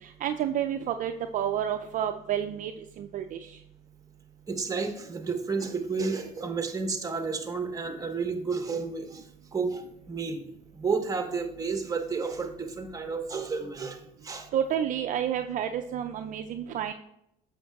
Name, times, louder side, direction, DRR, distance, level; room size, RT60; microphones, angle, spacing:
voice 1, 0.0-2.7 3.0-3.6 14.5-16.9, right 9 dB, 55° right, 6 dB, 0.4 m, -30 dB
voice 2, 4.5-10.4 10.7-14.5, right 4 dB, 20° right, 5 dB, 1.1 m, -31 dB
7.8 x 6.6 x 2.3 m, 0.79 s
supercardioid pair, 80°, 17 cm